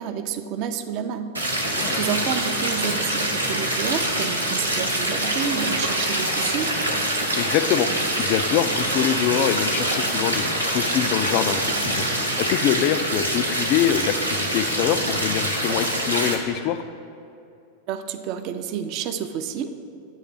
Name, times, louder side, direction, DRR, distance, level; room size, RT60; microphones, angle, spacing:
voice 1, 0.0-6.8 17.9-19.8, right 8 dB, 40° right, 9 dB, 0.4 m, -30 dB
sound 1, 1.3-16.3, right 1 dB, 85° right, 0.8 m, -25 dB
sound 2, 5.4-12.1, left 1 dB, 90° left, 0.6 m, -38 dB
voice 2, 7.4-16.8, left 10 dB, 40° left, 11 dB, 0.3 m, -24 dB
9.1 x 3.2 x 5.9 m, 2.6 s
figure-of-eight pair, 90°, 0 cm